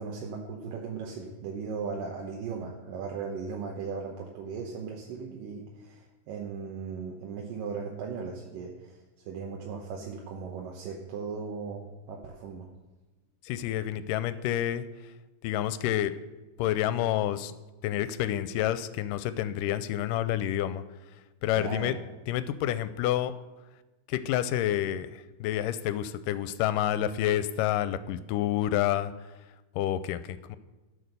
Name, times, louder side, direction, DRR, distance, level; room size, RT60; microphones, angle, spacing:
voice 1, 0.0-12.7 21.5-22.0, right 5 dB, 85° right, -1 dB, 2.7 m, -37 dB
voice 2, 13.4-14.9 15.4-16.2 16.6-17.5 17.8-20.8 21.4-22.0 22.3-23.3 24.1-29.1 29.8-30.6, left 12 dB, 85° left, 14 dB, 2.2 m, -28 dB
13.0 x 6.5 x 6.7 m, 1.1 s
omnidirectional pair, 3.8 m